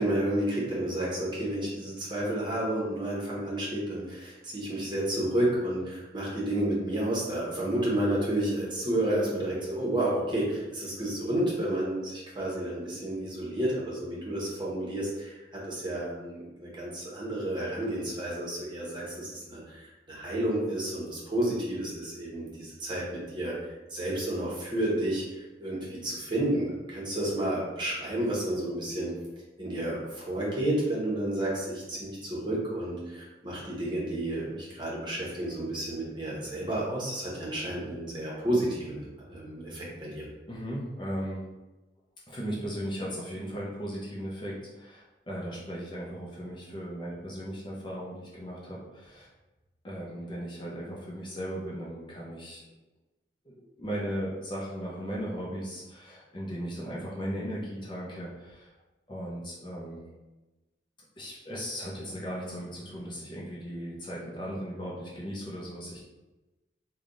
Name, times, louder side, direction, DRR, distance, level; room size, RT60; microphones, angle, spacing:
voice 1, 0.0-29.2 29.6-40.2, right 1 dB, 25° right, -6 dB, 1.1 m, -31 dB
voice 2, 40.5-41.5 42.3-49.3 49.8-52.6 53.5-58.7 59.1-60.0 61.2-66.0, equal, 25° left, -5 dB, 0.6 m, -37 dB
3.4 x 2.3 x 3.9 m, 1.1 s
head